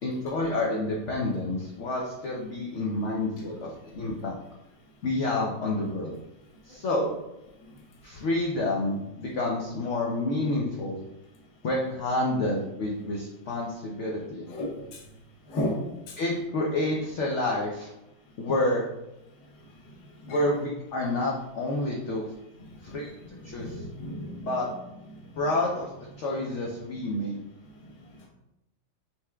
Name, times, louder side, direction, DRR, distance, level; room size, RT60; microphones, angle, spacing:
voice 1, 0.0-4.4 5.0-6.2 6.7-7.2 8.0-11.0 11.6-14.4 16.2-17.9 18.4-18.9 20.3-22.3 22.8-23.2 23.4-23.8 24.4-24.7 25.4-25.9 26.2-27.4, left 2 dB, 75° left, -2 dB, 0.6 m, -29 dB
voice 2, 14.5-15.0 15.5-15.8 16.1-16.2 23.5-24.5, left 1 dB, 50° left, -2 dB, 1.0 m, -32 dB
5.7 x 3.4 x 2.2 m, 0.91 s
omnidirectional pair, 2.0 m